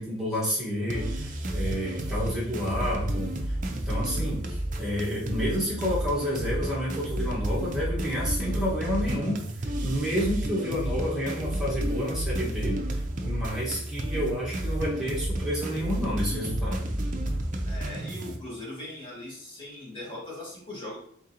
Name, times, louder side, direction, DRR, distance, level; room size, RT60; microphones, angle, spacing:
voice 1, 0.0-9.4 9.8-16.9, equal, 5° right, -7 dB, 1.4 m, -30 dB
sound 1, 0.9-18.4, right 1 dB, 40° right, 0.5 m, -31 dB
voice 2, 17.6-21.0, left 1 dB, 25° left, -6 dB, 1.6 m, -40 dB
3.7 x 3.7 x 2.9 m, 0.63 s
head